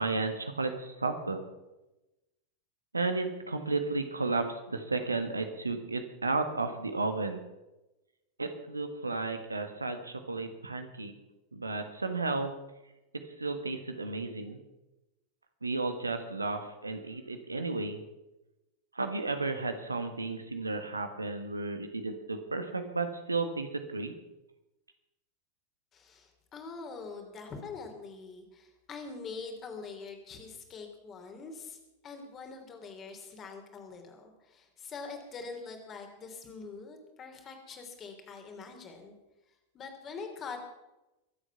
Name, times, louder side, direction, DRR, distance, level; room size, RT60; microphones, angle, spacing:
voice 1, 0.0-1.4 2.9-7.4 8.4-11.1 11.5-12.5 13.4-14.6 15.6-18.0 18.9-24.1, right 3 dB, 80° right, 7 dB, 1.6 m, -33 dB
voice 2, 25.9-39.1 39.7-40.6, left 4 dB, 30° left, 4 dB, 3.2 m, -44 dB
23.0 x 8.2 x 5.9 m, 0.99 s
figure-of-eight pair, 90°, 0 cm